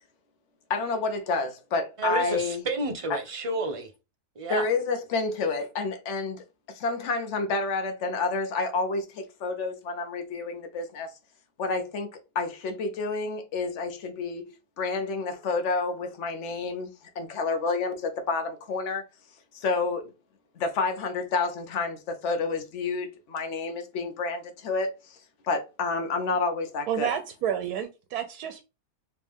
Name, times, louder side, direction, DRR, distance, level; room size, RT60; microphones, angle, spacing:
voice 1, 0.7-2.6 3.1-3.2 4.5-11.1 11.6-14.5 14.8-16.9 17.1-19.0 19.5-20.1 20.6-25.2 25.4-27.1, left 4 dB, 55° left, 1.1 m, -29 dB
voice 2, 2.0-3.9 4.4-4.6, right 3 dB, 50° right, 0.4 m, -30 dB
voice 3, 26.9-28.7, right 9 dB, 90° right, 1.1 m, -30 dB
3.2 x 3.1 x 3.5 m
omnidirectional pair, 1.6 m